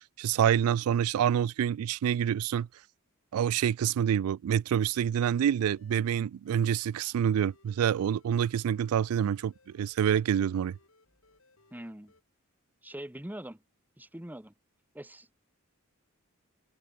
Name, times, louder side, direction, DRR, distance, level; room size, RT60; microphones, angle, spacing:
voice 1, 0.2-2.7 3.3-10.8, right 9 dB, 85° right, 0.3 m, -27 dB
sound 1, 4.9-12.2, left 3 dB, 70° left, 7.8 m, -65 dB
voice 2, 11.7-12.1 12.8-13.6 14.0-14.5 14.9-15.3, right 1 dB, 10° right, 1.4 m, -42 dB
head